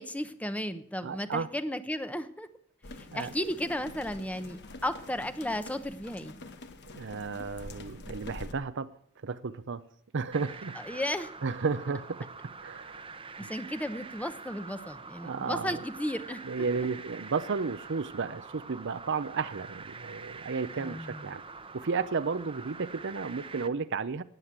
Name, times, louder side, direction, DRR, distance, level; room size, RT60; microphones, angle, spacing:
voice 1, 0.0-2.5 3.0-6.4 10.8-11.3 13.4-16.4 20.8-21.3, left 1 dB, 5° left, 0.9 m, -34 dB
voice 2, 1.0-1.5 3.1-3.3 6.8-8.9 9.2-9.8 10.1-11.0 11.4-12.3 12.6-12.9 13.4-13.5 15.2-15.8 16.4-21.4 21.7-24.2, right 5 dB, 60° right, 0.6 m, -33 dB
sound 1, 2.8-8.5, left 2 dB, 55° left, 1.3 m, -46 dB
sound 2, 10.3-23.7, right 4 dB, 25° right, 0.9 m, -45 dB
17.0 x 9.7 x 7.5 m
head